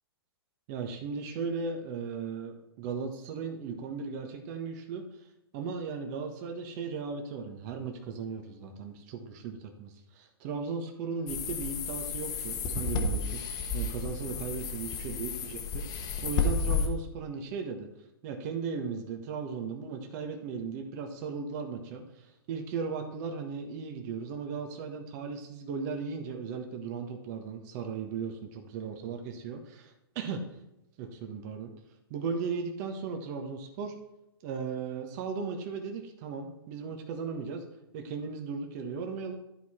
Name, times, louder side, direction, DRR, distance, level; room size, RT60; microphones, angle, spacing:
voice 1, 0.7-5.2 5.5-13.4 13.7-17.9 18.2-30.4 31.0-31.7 32.1-33.9 34.4-37.6 37.9-39.3, right 5 dB, 45° right, 4 dB, 1.3 m, -37 dB
sound 1, 11.3-16.9, left 4 dB, 30° left, 1.1 m, -32 dB
11.5 x 4.7 x 4.3 m, 0.90 s
hypercardioid pair, 125°, 13 cm